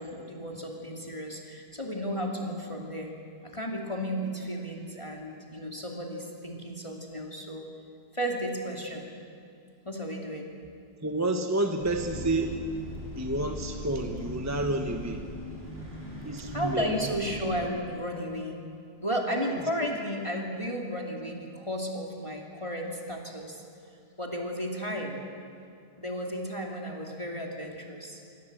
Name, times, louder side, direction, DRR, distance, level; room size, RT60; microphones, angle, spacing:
voice 1, 0.0-3.1 3.4-7.7 8.1-9.1 9.8-10.5 16.4-18.6 19.0-23.6 24.2-25.2 26.0-28.2, equal, 15° left, 0 dB, 2.7 m, -33 dB
voice 2, 11.0-12.6 13.2-15.2 16.3-17.0 19.8-19.9, right 2 dB, 10° right, 4 dB, 1.0 m, -29 dB
sound 1, 11.8-17.7, equal, 35° right, 5.5 m, -40 dB
26.0 x 24.5 x 7.9 m, 2.4 s
omnidirectional pair, 1.8 m